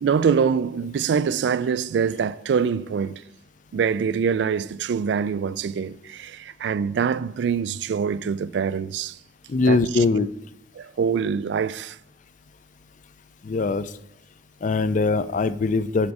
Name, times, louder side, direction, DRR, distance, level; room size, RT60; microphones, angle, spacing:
voice 1, 0.0-3.2 3.7-9.2 9.7-9.8 10.8-12.0, right 6 dB, 70° right, 0.3 m, -24 dB
voice 2, 9.5-10.3 13.4-13.9 14.6-16.1, left 3 dB, 45° left, 0.4 m, -22 dB
7.3 x 5.2 x 4.8 m
head